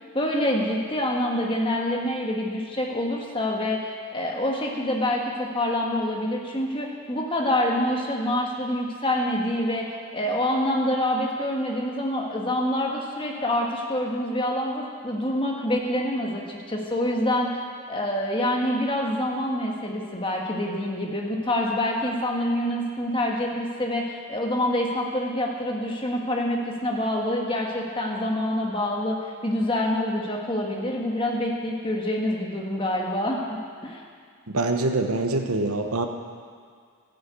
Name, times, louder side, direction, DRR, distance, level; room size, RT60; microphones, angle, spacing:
voice 1, 0.1-9.9 10.1-17.5 17.9-29.2 29.4-34.0, left 1 dB, 25° left, -1 dB, 1.6 m, -26 dB
voice 2, 34.5-36.1, right 2 dB, 80° right, 5 dB, 1.1 m, -24 dB
13.0 x 9.4 x 8.3 m, 2.1 s
head